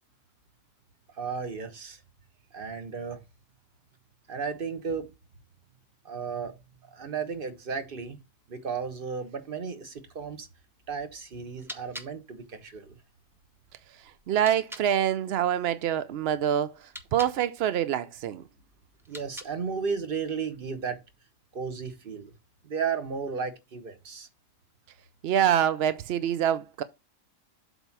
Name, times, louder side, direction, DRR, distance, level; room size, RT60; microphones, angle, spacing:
voice 1, 1.1-2.0 2.5-3.2 4.3-5.1 6.0-6.5 6.8-8.2 8.5-10.5 10.9-13.0 19.1-21.0 21.5-22.3 22.6-24.3, right 5 dB, 40° right, 1.1 m, -34 dB
sound 1, 11.4-14.9 16.7-17.4 18.9-19.8, equal, 5° right, 0.5 m, -46 dB
voice 2, 14.3-18.4 25.2-26.8, right 10 dB, 75° right, 0.5 m, -26 dB
8.0 x 3.7 x 5.9 m
omnidirectional pair, 1.6 m